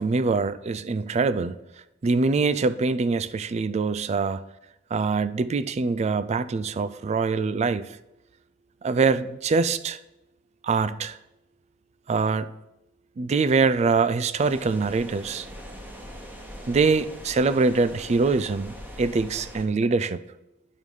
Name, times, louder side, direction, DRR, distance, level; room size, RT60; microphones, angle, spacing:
voice 1, 0.0-1.6 2.0-4.4 4.9-7.9 8.8-10.0 10.6-11.2 12.1-12.5 13.2-15.5 16.7-20.2, right 4 dB, 35° right, 15 dB, 0.3 m, -24 dB
sound 1, 14.4-19.6, equal, 10° right, 1.1 m, -42 dB
9.2 x 4.9 x 5.3 m, 0.91 s
head